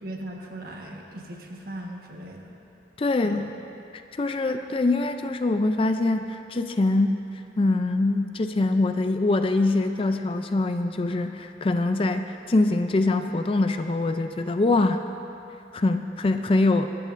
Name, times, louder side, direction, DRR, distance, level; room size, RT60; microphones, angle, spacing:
voice 1, 0.0-2.6 3.2-3.4, right 1 dB, 55° right, 0 dB, 1.3 m, -38 dB
voice 2, 3.0-3.5 4.1-7.2 7.6-15.0 15.7-16.9, left 2 dB, 30° left, 7 dB, 0.4 m, -23 dB
21.0 x 12.5 x 2.6 m, 2.8 s
head